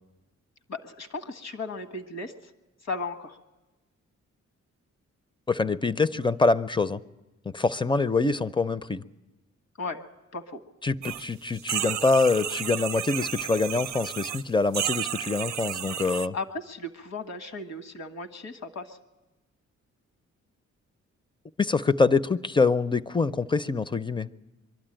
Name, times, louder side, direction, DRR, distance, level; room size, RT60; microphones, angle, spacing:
voice 1, 0.7-2.3 2.8-3.4 9.8-10.0 10.3-10.6 16.3-19.0, left 3 dB, 60° left, 9 dB, 1.6 m, -36 dB
voice 2, 5.5-7.0 7.5-9.0 10.8-16.3 21.6-24.3, left 3 dB, 15° left, 15 dB, 0.6 m, -25 dB
sound 1, 11.0-11.2 11.6-14.4 14.7-16.3, right 10 dB, 65° right, 0.6 m, -32 dB
23.5 x 12.5 x 9.0 m, 1.1 s
cardioid pair, 80°, 30 cm